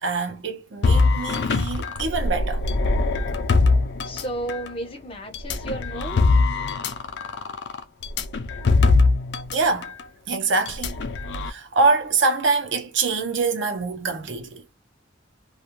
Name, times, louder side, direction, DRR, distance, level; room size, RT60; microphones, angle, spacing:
voice 1, 0.0-2.6 9.5-9.9 10.3-11.0 11.4-14.6, right 4 dB, 85° right, 0.7 m, -24 dB
sound 1, 0.8-4.7 5.3-9.6 9.8-10.0 10.7-11.5, left 3 dB, 65° left, 0.4 m, -22 dB
voice 2, 4.0-6.2, right 1 dB, 30° left, 0.9 m, -33 dB
2.4 x 2.3 x 2.9 m
head